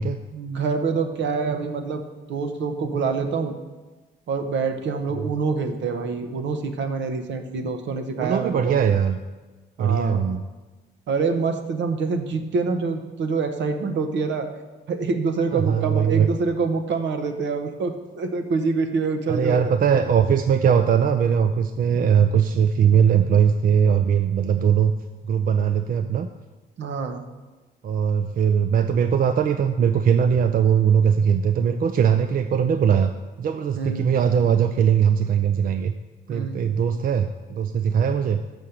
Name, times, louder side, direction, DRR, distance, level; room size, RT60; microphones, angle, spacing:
voice 1, 0.3-2.0 2.3-3.5 4.3-8.8 9.8-10.2 11.1-14.5 14.9-20.0 26.8-27.2 33.7-34.2 36.3-36.7, right 4 dB, 65° right, 6 dB, 0.9 m, -26 dB
voice 2, 8.2-9.2 9.8-10.4 15.5-16.3 19.3-24.9 25.3-26.3 27.8-33.1 33.4-35.9 36.3-38.4, right 7 dB, 45° right, 8 dB, 0.4 m, -20 dB
6.2 x 5.7 x 6.5 m, 1.2 s
cardioid pair, 90°, 20 cm